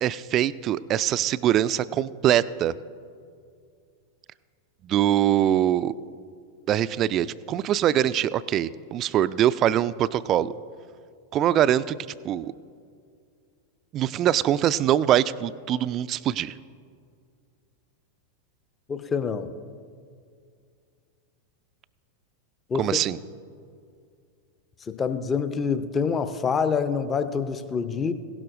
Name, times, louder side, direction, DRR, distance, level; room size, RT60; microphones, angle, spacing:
voice 1, 0.0-2.7 4.8-5.9 6.7-10.5 11.3-11.9 12.2-12.5 13.9-16.5 22.8-23.2, right 11 dB, 35° right, 17 dB, 0.3 m, -23 dB
voice 2, 18.9-19.5 22.7-22.9 24.9-28.1, left 6 dB, 20° left, 11 dB, 0.6 m, -26 dB
16.5 x 12.0 x 2.6 m, 2.2 s
figure-of-eight pair, 90°, 0 cm